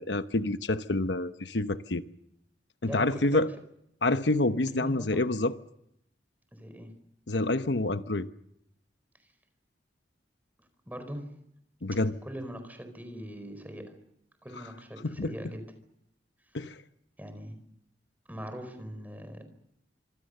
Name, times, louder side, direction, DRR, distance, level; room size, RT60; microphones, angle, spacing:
voice 1, 0.0-2.0 2.8-3.5 4.0-5.5 7.3-8.3 11.8-12.2 15.0-15.3 16.5-16.8, left 2 dB, 80° left, 11 dB, 1.0 m, -27 dB
voice 2, 2.8-3.4 4.7-5.2 6.5-6.9 10.9-11.3 12.2-14.0 14.4-15.6 17.2-17.6 18.3-19.4, equal, 10° right, 8 dB, 4.5 m, -41 dB
26.5 x 25.5 x 6.7 m, 0.76 s
head